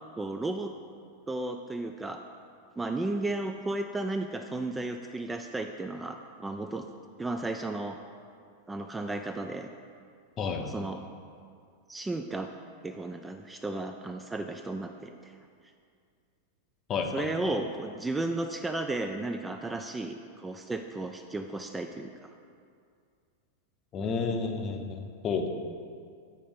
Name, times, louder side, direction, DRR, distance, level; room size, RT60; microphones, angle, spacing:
voice 1, 0.2-0.7 1.3-2.2 2.8-6.9 7.2-8.0 8.7-9.7 10.6-11.0 11.9-12.5 12.8-15.4 17.1-22.3, right 2 dB, 10° right, 5 dB, 0.3 m, -34 dB
voice 2, 10.4-10.7 16.9-17.3 23.9-25.5, left 5 dB, 30° left, 5 dB, 0.6 m, -31 dB
7.7 x 4.2 x 5.2 m, 2.2 s
figure-of-eight pair, 90°, 0 cm